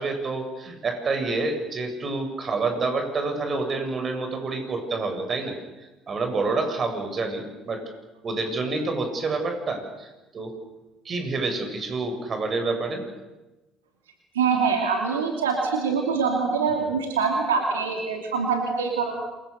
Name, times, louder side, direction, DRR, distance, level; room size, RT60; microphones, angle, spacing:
voice 1, 0.0-7.8 8.2-10.5 11.1-13.0, right 3 dB, 40° right, 5 dB, 7.0 m, -28 dB
voice 2, 14.3-19.2, right 5 dB, 85° right, 2 dB, 2.9 m, -24 dB
28.0 x 24.0 x 6.7 m, 1.1 s
hypercardioid pair, 60°, 0 cm